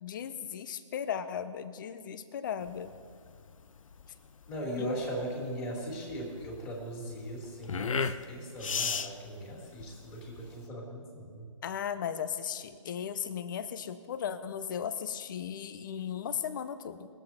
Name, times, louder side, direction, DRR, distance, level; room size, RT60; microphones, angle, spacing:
voice 1, 0.0-2.9 4.8-4.9 11.6-17.1, left 8 dB, 35° left, 12 dB, 0.7 m, -36 dB
sound 1, 2.6-10.7, left 6 dB, 70° left, 0.7 m, -37 dB
voice 2, 4.5-11.4, equal, 15° left, -7 dB, 2.7 m, -38 dB
21.5 x 7.8 x 4.3 m, 2.1 s
hypercardioid pair, 150°, 17 cm